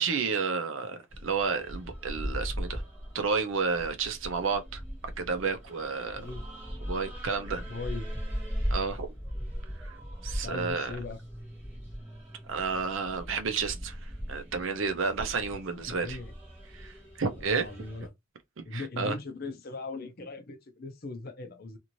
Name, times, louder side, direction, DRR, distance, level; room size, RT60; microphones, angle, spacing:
voice 1, 0.0-2.8 3.1-4.8 5.2-6.2 6.9-7.6 8.7-9.1 9.8-10.0 10.2-10.9 12.5-14.0 14.3-16.2 16.7-17.7 18.7-19.2, right 5 dB, 65° right, 0.6 m, -31 dB
sound 1, 1.1-18.1, equal, 10° right, 1.3 m, -39 dB
voice 2, 7.7-8.1 10.4-11.2 15.7-16.3 17.4-18.1 18.6-21.8, left 3 dB, 45° left, 0.5 m, -39 dB
2.6 x 2.6 x 3.0 m
head